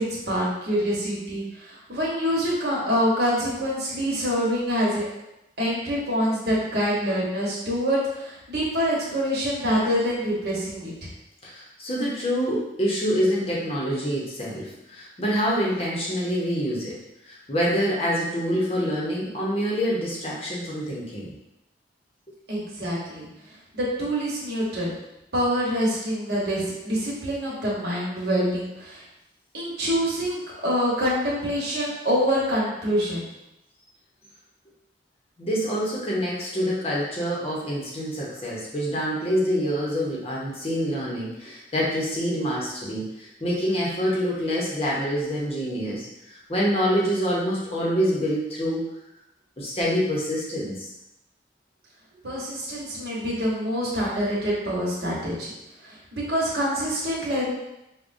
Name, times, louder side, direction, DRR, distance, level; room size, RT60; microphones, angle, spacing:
voice 1, 0.0-5.1 5.6-11.1 22.5-23.2 23.7-24.9 25.3-29.0 29.5-33.3 52.2-55.5 55.8-57.5, equal, 65° right, -5 dB, 1.1 m, -26 dB
voice 2, 11.4-17.0 17.2-21.3 35.4-49.0 49.6-50.9, equal, 35° left, -5 dB, 0.7 m, -26 dB
4.8 x 2.2 x 2.6 m, 0.89 s
head